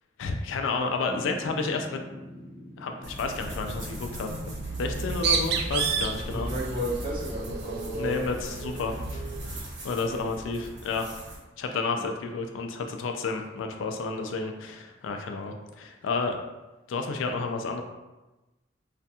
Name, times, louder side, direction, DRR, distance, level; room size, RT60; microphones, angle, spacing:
voice 1, 0.2-2.0 2.8-4.3 4.8-6.5 8.0-11.1 11.6-16.4 16.9-17.8, left 4 dB, 85° left, 5 dB, 0.3 m, -31 dB
sound 1, 1.0-7.5, equal, 10° left, 0.4 m, -46 dB
sound 2, 3.0-11.4, right 1 dB, 85° right, 1.0 m, -38 dB
Bird, 4.8-9.7, right 5 dB, 60° right, 0.3 m, -31 dB
voice 2, 6.2-8.2 10.0-10.2 11.9-12.1, equal, 25° right, -7 dB, 0.7 m, -33 dB
2.4 x 2.2 x 2.7 m, 1.1 s
head